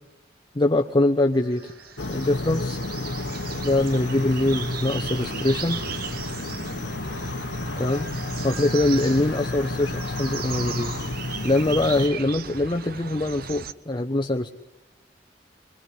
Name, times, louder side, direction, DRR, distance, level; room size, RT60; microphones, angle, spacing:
voice 1, 0.5-1.7 2.1-2.8 3.6-5.8 7.8-8.1 8.4-10.9 11.4-14.5, left 2 dB, 25° left, 3 dB, 0.9 m, -23 dB
sound 1, 1.3-10.4, equal, 85° right, 5.2 m, -49 dB
sound 2, 1.5-13.7, right 6 dB, 55° right, 0.8 m, -37 dB
sound 3, 2.0-12.1, left 2 dB, 75° left, 1.0 m, -31 dB
24.5 x 22.0 x 9.6 m, 1.1 s
head